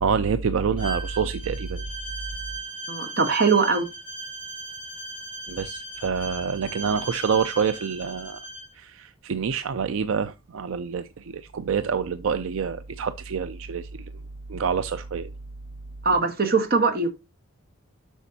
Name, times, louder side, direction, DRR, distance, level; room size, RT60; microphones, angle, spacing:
voice 1, 0.0-1.8 5.5-8.4 8.7-14.1 14.5-15.3, right 6 dB, 70° right, 0.4 m, -27 dB
Bowed string instrument, 0.8-8.7, right 2 dB, 25° left, 4.2 m, -37 dB
voice 2, 2.9-3.9 16.0-17.1, right 4 dB, 45° right, 1.2 m, -21 dB
8.2 x 6.1 x 2.7 m
head